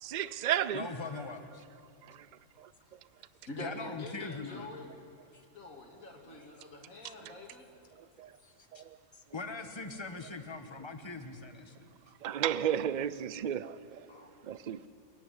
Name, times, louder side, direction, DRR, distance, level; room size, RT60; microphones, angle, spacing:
voice 1, 0.1-0.9 12.2-13.7 14.5-14.8, right 10 dB, 80° right, 0.4 m, -31 dB
voice 2, 0.7-1.6 3.6-4.7 5.3-5.4 8.4-8.8 9.1-11.9, left 3 dB, 20° left, 1.2 m, -42 dB
voice 3, 3.5-4.9 5.5-7.7 14.1-14.3, left 2 dB, 70° left, 2.4 m, -46 dB
27.0 x 10.5 x 10.0 m
omnidirectional pair, 1.5 m